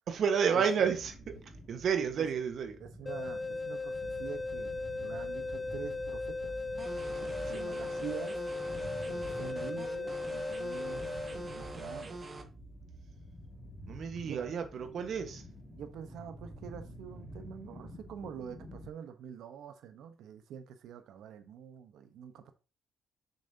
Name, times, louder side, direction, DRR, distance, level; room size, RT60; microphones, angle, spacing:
voice 1, 0.1-1.3 1.7-2.8 7.1-7.9 13.9-15.4, right 7 dB, 60° right, 1.4 m, -31 dB
sound 1, 0.8-18.9, equal, 5° left, 3.5 m, -49 dB
voice 2, 2.8-6.6 7.5-8.4 9.1-11.1 11.3-12.2 14.2-14.4 15.7-22.5, right 8 dB, 80° right, 1.1 m, -46 dB
sound 2, 3.1-12.0, left 3 dB, 20° left, 0.4 m, -37 dB
sound 3, 6.8-12.4, right 3 dB, 35° right, 1.5 m, -43 dB
7.1 x 6.6 x 2.9 m
cardioid pair, 90°, 0 cm